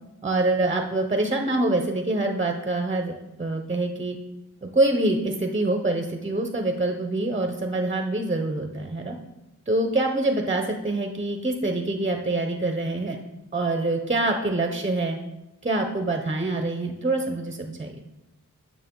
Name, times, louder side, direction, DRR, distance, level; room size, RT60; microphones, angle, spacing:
voice 1, 0.2-4.2 4.6-9.2 9.7-13.2 13.5-15.2 15.6-17.9, right 2 dB, 20° right, 4 dB, 0.7 m, -25 dB
9.1 x 6.3 x 3.8 m, 0.97 s
wide cardioid pair, 120°, 32 cm